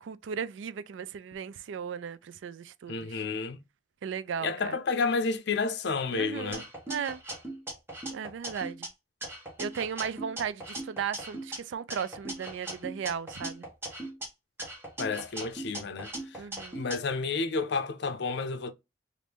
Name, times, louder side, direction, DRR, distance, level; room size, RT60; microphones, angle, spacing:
voice 1, 0.0-3.2 4.0-4.8 6.1-7.2 8.1-8.9 9.6-13.7 16.3-16.8, right 7 dB, 90° right, 0.4 m, -36 dB
voice 2, 2.9-3.6 4.4-6.6 15.0-16.4 16.7-18.7, left 4 dB, 65° left, 0.6 m, -31 dB
sound 1, 6.5-8.9 9.2-11.6 11.9-14.3 14.6-17.0, right 1 dB, 15° right, 1.1 m, -39 dB
3.1 x 2.5 x 3.3 m
head